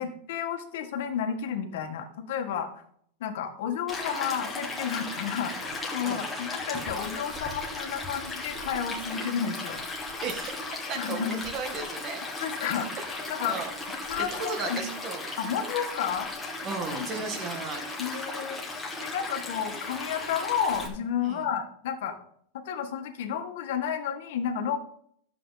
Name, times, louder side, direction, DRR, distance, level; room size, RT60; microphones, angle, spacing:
voice 1, 0.0-2.8 3.2-9.8 11.0-11.4 12.4-12.9 13.3-13.6 14.1-14.8 15.4-16.5 17.0-17.1 18.0-18.6 19.0-22.2 22.5-24.8, left 8 dB, 65° left, 6 dB, 1.6 m, -31 dB
Stream, 3.9-20.9, left 2 dB, 5° left, 1.7 m, -36 dB
voice 2, 10.2-10.6 10.9-12.2 12.6-13.1 13.4-13.7 14.2-15.3 16.6-18.0 21.2-21.5, right 4 dB, 25° right, 5 dB, 1.5 m, -35 dB
13.0 x 7.6 x 4.1 m, 0.65 s
supercardioid pair, 180°, 0 cm